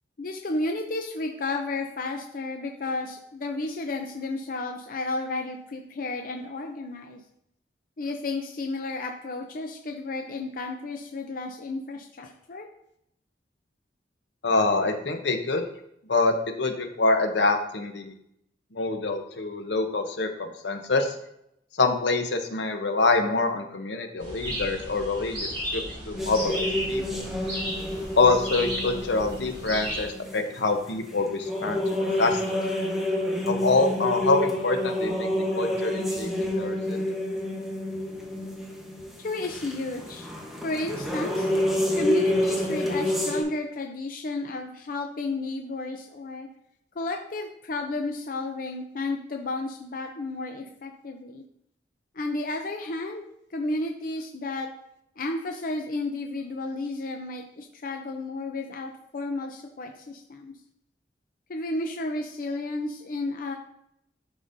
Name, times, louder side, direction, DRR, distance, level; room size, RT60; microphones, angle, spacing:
voice 1, 0.2-7.2 8.0-12.7 39.2-40.3 40.6-41.5 42.0-46.5 47.0-51.4 52.1-53.2 53.5-54.7 55.2-60.5 61.5-63.6, left 2 dB, 50° left, 3 dB, 0.5 m, -32 dB
voice 2, 14.4-15.6 16.1-18.1 18.7-21.2 21.8-27.2 28.2-32.6 33.5-35.3 35.5-37.2, left 3 dB, 75° left, 5 dB, 0.8 m, -26 dB
sound 1, 24.2-30.0, equal, 30° right, 2.2 m, -34 dB
sound 2, 26.2-43.4, left 1 dB, ahead, 1.0 m, -29 dB
11.5 x 3.9 x 2.6 m, 0.77 s
head